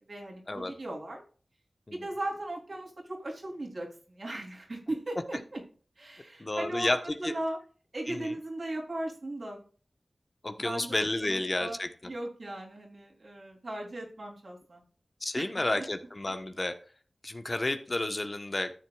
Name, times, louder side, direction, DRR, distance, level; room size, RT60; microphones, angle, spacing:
voice 1, 0.1-1.2 1.9-5.6 6.0-7.6 7.9-9.6 10.6-14.8 15.4-15.5 15.7-15.9, right 1 dB, 60° right, 0 dB, 3.5 m, -38 dB
voice 2, 6.4-7.0 7.2-7.3 8.1-8.3 10.4-11.9 15.2-16.7 17.2-18.7, left 2 dB, 40° left, 8 dB, 1.2 m, -31 dB
13.0 x 7.4 x 2.4 m, 0.40 s
cardioid pair, 45°, 0 cm